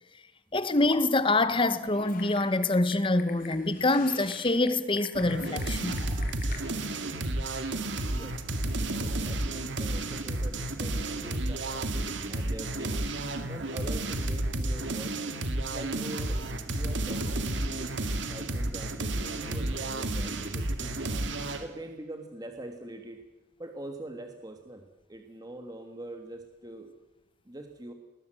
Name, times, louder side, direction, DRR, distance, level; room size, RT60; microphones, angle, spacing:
voice 1, 0.5-6.2, left 2 dB, 25° left, 1.2 m, -26 dB
Typing, 1.9-6.6, left 5 dB, 45° left, 3.1 m, -46 dB
sound 1, 5.2-21.7, right 2 dB, 75° right, 2.0 m, -32 dB
voice 2, 9.0-13.0 13.5-15.2 15.6-17.9 18.2-20.9 21.6-23.2 23.6-24.8 25.1-26.9 27.5-27.9, right 1 dB, 20° right, 1.6 m, -43 dB
20.5 x 20.0 x 7.8 m
head